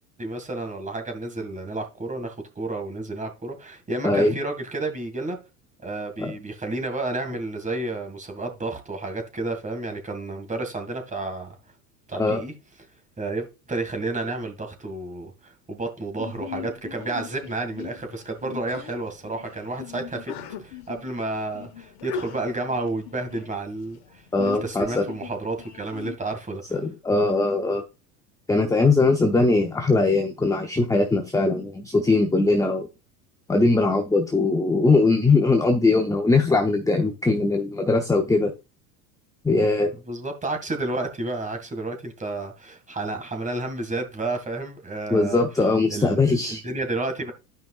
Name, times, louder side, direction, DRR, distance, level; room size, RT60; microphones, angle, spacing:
voice 1, 0.2-5.4 5.8-11.6 12.1-12.5 13.2-20.3 20.6-26.6 40.1-45.4 45.9-47.3, right 2 dB, 15° right, 2.0 m, -31 dB
voice 2, 4.0-4.3 6.2-6.3 12.2-12.4 24.3-25.0 26.7-27.8 28.5-32.9 33.5-38.5 39.4-39.9 45.1-46.6, left 3 dB, 5° left, 0.8 m, -21 dB
Sneeze, 16.2-26.1, left 8 dB, 55° left, 1.4 m, -40 dB
13.0 x 5.3 x 2.4 m
hypercardioid pair, 90°, 47 cm